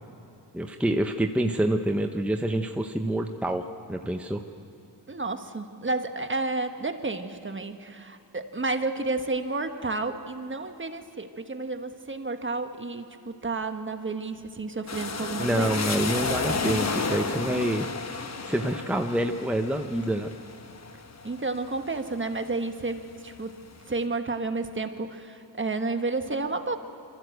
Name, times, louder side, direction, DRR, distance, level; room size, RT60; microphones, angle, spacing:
voice 1, 0.5-4.4 15.4-20.3, right 1 dB, 5° right, 4 dB, 0.9 m, -27 dB
voice 2, 5.1-15.8 21.2-23.6 23.9-26.8, right 3 dB, 25° right, 7 dB, 1.3 m, -31 dB
sound 1, 14.9-22.5 23.0-23.8, left 4 dB, 35° left, 1.2 m, -32 dB
24.5 x 14.0 x 8.0 m, 2.6 s
cardioid pair, 70°, 45 cm